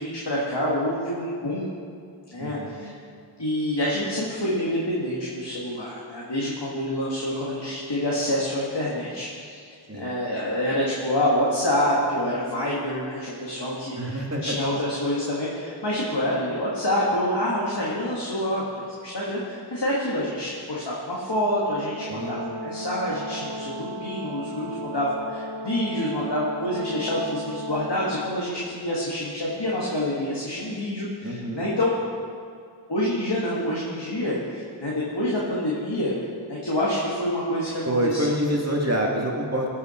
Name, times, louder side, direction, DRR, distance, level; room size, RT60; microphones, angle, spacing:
voice 1, 0.0-1.7 2.3-2.9 3.4-9.7 9.9-18.7 19.0-31.9 32.9-36.1 36.5-38.3, left 1 dB, 60° left, -6 dB, 2.2 m, -27 dB
voice 2, 2.4-2.8 9.9-10.1 14.0-14.6 22.1-22.5 31.2-31.6 37.9-39.8, right 1 dB, 30° right, -1 dB, 2.2 m, -26 dB
Brass instrument, 22.0-28.3, right 1 dB, 85° right, 0.7 m, -35 dB
19.5 x 7.2 x 4.5 m, 2.2 s
wide cardioid pair, 45°, 47 cm